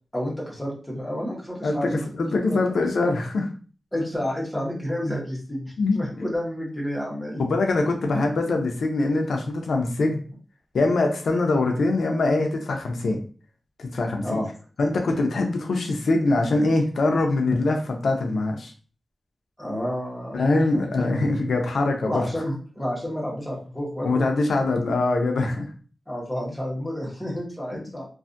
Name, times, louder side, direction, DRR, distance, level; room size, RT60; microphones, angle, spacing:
voice 1, 0.1-2.0 2.5-2.6 3.9-7.4 8.0-8.2 14.2-14.5 19.6-21.1 22.1-24.2 26.1-28.1, equal, 10° left, -4 dB, 1.0 m, -30 dB
voice 2, 2.2-3.5 5.8-6.0 7.4-10.2 10.7-13.2 13.8-14.4 14.8-18.7 20.3-22.2 24.0-25.7, left 2 dB, 85° left, 3 dB, 0.4 m, -23 dB
2.4 x 2.3 x 2.5 m, 0.39 s
wide cardioid pair, 120°, 0 cm